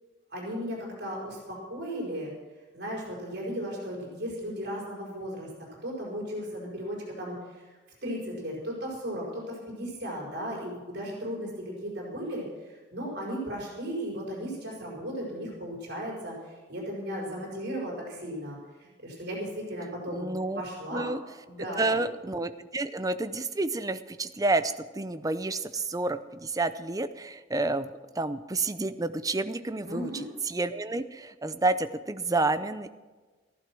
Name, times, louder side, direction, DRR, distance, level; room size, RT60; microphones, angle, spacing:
voice 1, 0.3-2.3 2.7-5.5 5.8-7.7 8.0-20.2 20.5-21.1 21.5-22.0 29.9-30.3, equal, 60° right, -2 dB, 5.1 m, -36 dB
voice 2, 20.1-20.6 20.9-21.2 21.8-32.9, right 2 dB, 20° right, 11 dB, 0.6 m, -30 dB
14.5 x 11.5 x 6.2 m, 1.3 s
head